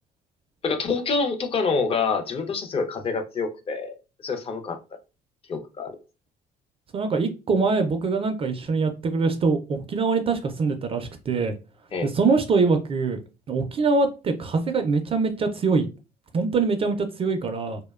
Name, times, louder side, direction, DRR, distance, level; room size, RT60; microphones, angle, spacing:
voice 1, 0.6-3.9 4.2-4.8 5.5-6.0 11.9-12.1, left 4 dB, 35° left, 0.5 m, -26 dB
voice 2, 6.9-11.5 12.0-13.2 13.5-15.9 16.3-17.8, right 4 dB, 35° right, 0.3 m, -23 dB
2.6 x 2.1 x 2.3 m
cardioid pair, 110°, 17 cm